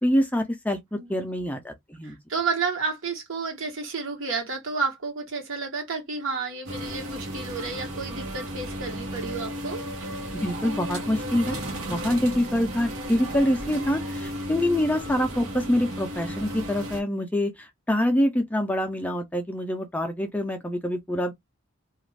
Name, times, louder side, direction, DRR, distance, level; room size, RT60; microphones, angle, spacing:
voice 1, 0.0-2.2 10.3-11.6 11.9-21.3, left 1 dB, 5° left, 0.4 m, -25 dB
voice 2, 0.9-1.3 2.0-9.8, right 4 dB, 65° right, 1.2 m, -31 dB
sound 1, 6.6-17.0, equal, 85° right, 1.1 m, -34 dB
2.4 x 2.3 x 3.2 m
head